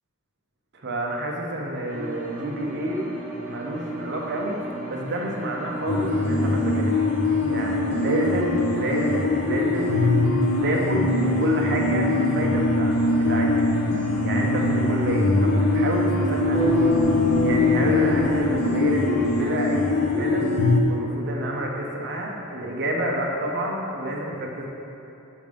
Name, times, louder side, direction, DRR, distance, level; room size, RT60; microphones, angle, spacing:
voice 1, 0.7-3.0 3.5-4.6 4.9-7.0 7.5-9.9 10.6-13.6 14.2-16.7 17.4-20.5 20.9-24.7, right 1 dB, 55° right, -1 dB, 0.9 m, -28 dB
sound 1, 1.9-19.5, right 2 dB, 40° right, 1.3 m, -36 dB
sound 2, 5.9-20.8, left 2 dB, 85° left, 0.8 m, -22 dB
sound 3, 16.5-19.6, right 1 dB, ahead, 1.4 m, -26 dB
7.0 x 5.1 x 5.3 m, 2.8 s
head